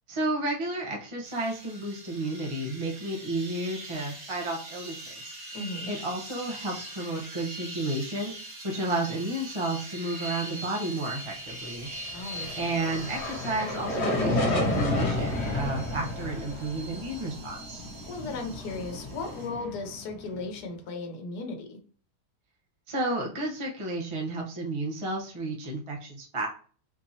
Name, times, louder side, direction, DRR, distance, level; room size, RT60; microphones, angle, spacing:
voice 1, 0.1-5.4 5.9-8.3 8.6-11.9 12.5-17.8 22.9-26.5, right 2 dB, 25° right, -1 dB, 0.7 m, -32 dB
sound 1, 1.2-19.5, right 1 dB, 55° right, 1.5 m, -43 dB
voice 2, 5.5-6.0 12.1-12.5 18.1-21.8, left 3 dB, 75° left, 5 dB, 1.4 m, -36 dB
sound 2, 12.1-20.5, left 1 dB, 45° left, 1.1 m, -31 dB
4.3 x 2.9 x 2.7 m, 0.41 s
omnidirectional pair, 1.8 m